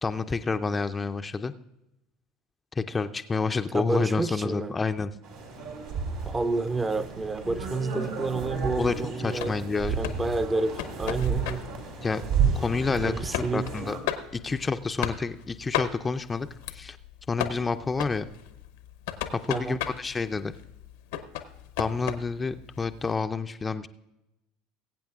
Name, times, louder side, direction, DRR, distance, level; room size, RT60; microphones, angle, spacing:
voice 1, 0.0-1.5 2.8-5.1 8.8-9.9 12.0-12.2 12.6-14.0 14.3-16.5 16.7-17.0 17.3-18.3 19.3-20.5 21.8-23.9, left 4 dB, 25° left, 9 dB, 0.5 m, -29 dB
voice 2, 3.7-4.7 6.3-9.6 10.0-11.6 13.0-13.7 19.5-19.8, right 3 dB, 20° right, 11 dB, 0.7 m, -29 dB
sound 1, 5.2-14.0, right 6 dB, 75° right, 3.1 m, -32 dB
sound 2, 9.4-23.1, left 10 dB, 75° left, 0.8 m, -37 dB
21.5 x 8.5 x 2.4 m, 0.91 s
hypercardioid pair, 70°, 0 cm